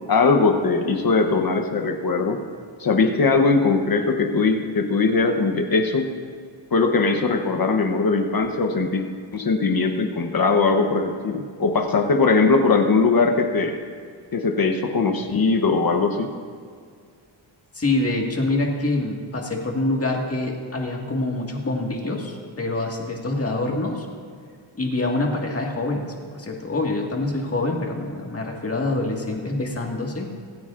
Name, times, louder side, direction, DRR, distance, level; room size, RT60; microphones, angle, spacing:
voice 1, 0.0-2.4 2.8-6.1 6.7-9.1 9.3-13.8 14.3-16.3, left 4 dB, 45° left, 5 dB, 0.9 m, -20 dB
voice 2, 17.7-24.1 24.8-30.3, left 2 dB, 30° left, 0 dB, 1.8 m, -25 dB
25.0 x 8.9 x 2.5 m, 2.1 s
cardioid pair, 100°, 48 cm